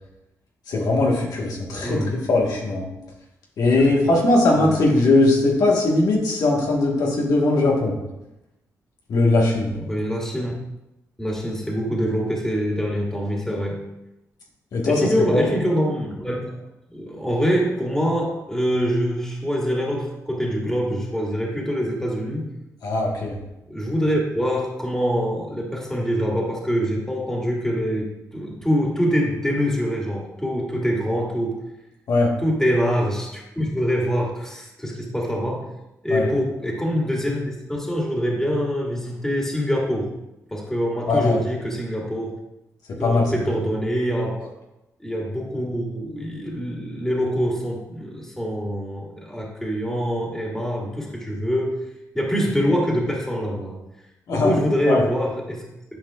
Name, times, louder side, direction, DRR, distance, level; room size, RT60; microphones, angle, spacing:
voice 1, 0.7-2.9 3.6-8.0 9.1-9.8 14.7-15.4 22.8-23.4 32.1-32.3 36.1-36.3 41.1-41.4 43.0-43.3 54.3-54.6 54.9-55.0, left 2 dB, 70° left, -2 dB, 1.6 m, -20 dB
voice 2, 1.8-2.2 3.8-4.0 4.6-4.7 9.9-10.5 11.2-13.9 14.9-16.6 16.9-22.5 23.7-31.6 32.4-35.7 36.0-40.1 40.5-42.4 43.0-44.3 45.0-51.7 52.1-53.8 54.3-55.6, equal, 5° left, -3 dB, 2.2 m, -24 dB
10.0 x 4.9 x 2.5 m, 0.92 s
supercardioid pair, 50°, 7 cm